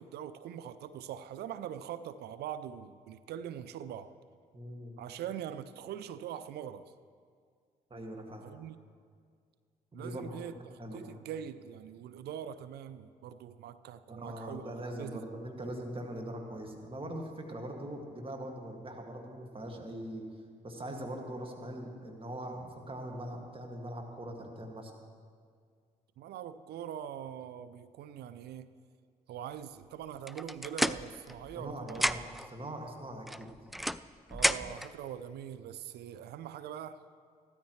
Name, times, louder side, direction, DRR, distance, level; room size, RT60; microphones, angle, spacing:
voice 1, 0.0-4.1 5.0-6.9 8.4-8.8 9.9-15.2 26.2-28.7 29.3-32.1 34.3-37.0, right 9 dB, 65° right, 13 dB, 0.5 m, -43 dB
voice 2, 4.5-4.9 7.9-8.5 9.9-10.4 10.8-11.0 14.1-20.2 20.6-24.9 31.5-32.2 32.5-33.5, right 1 dB, 30° right, 2 dB, 2.1 m, -41 dB
sound 1, 30.3-31.6 31.9-32.5 33.3-34.9, equal, ahead, 0.3 m, -32 dB
15.5 x 13.0 x 3.2 m, 2.1 s
hypercardioid pair, 50°, 18 cm